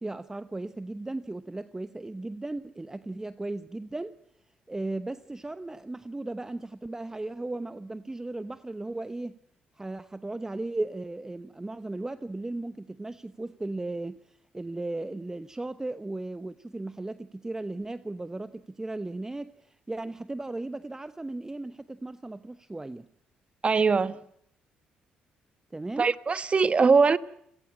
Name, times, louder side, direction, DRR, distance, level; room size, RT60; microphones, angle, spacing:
voice 1, 0.0-4.1 4.7-9.4 9.8-23.1 25.7-26.1, right 2 dB, 15° right, 1.0 m, -36 dB
voice 2, 23.6-24.2 26.0-27.2, right 4 dB, 35° right, 1.2 m, -21 dB
29.0 x 17.5 x 8.7 m
supercardioid pair, 60°, 3 cm